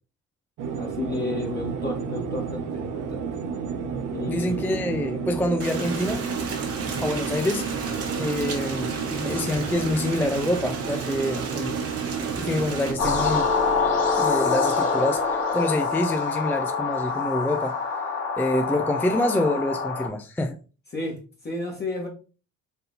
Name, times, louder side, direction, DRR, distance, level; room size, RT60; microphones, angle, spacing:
sound 1, 0.6-13.4, right 6 dB, 90° right, 0.8 m, -31 dB
voice 1, 0.8-3.4 4.1-4.7 20.9-22.1, left 2 dB, 35° left, 1.4 m, -32 dB
voice 2, 4.3-6.3 7.0-7.9 8.2-11.8 12.4-13.5 14.2-17.8 18.4-20.6, left 1 dB, 5° left, 0.4 m, -26 dB
Rain, 5.6-12.9, right 4 dB, 50° right, 1.3 m, -34 dB
sound 2, 13.0-20.1, left 5 dB, 50° left, 2.2 m, -25 dB
4.2 x 2.6 x 3.8 m
cardioid pair, 90°, 30 cm